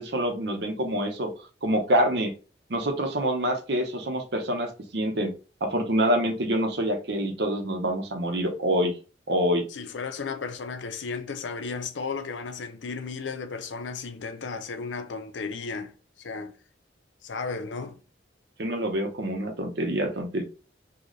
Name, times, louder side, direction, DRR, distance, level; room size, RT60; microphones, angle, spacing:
voice 1, 0.0-1.3 1.6-2.3 2.7-5.3 5.6-8.9 9.3-9.6 18.6-20.4, equal, 65° right, 0.8 m, -26 dB
voice 2, 9.7-16.5 17.2-18.0, left 4 dB, 90° left, 0.6 m, -34 dB
3.9 x 2.3 x 3.1 m
head